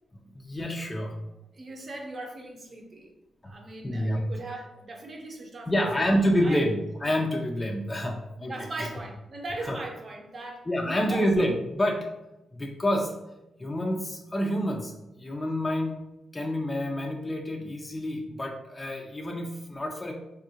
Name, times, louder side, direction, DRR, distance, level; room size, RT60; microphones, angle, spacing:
voice 1, 0.3-1.1 3.4-3.5 3.8-4.2 5.7-8.5 8.8-8.9 9.7-9.8 10.7-12.1 12.5-13.1 13.6-14.9 15.2-16.0 16.3-20.1, equal, 20° left, 0 dB, 0.4 m, -28 dB
voice 2, 1.5-3.1 3.4-6.6 8.4-11.3, right 2 dB, 45° right, 2 dB, 0.7 m, -39 dB
3.4 x 2.4 x 2.8 m, 0.93 s
cardioid pair, 80°, 0 cm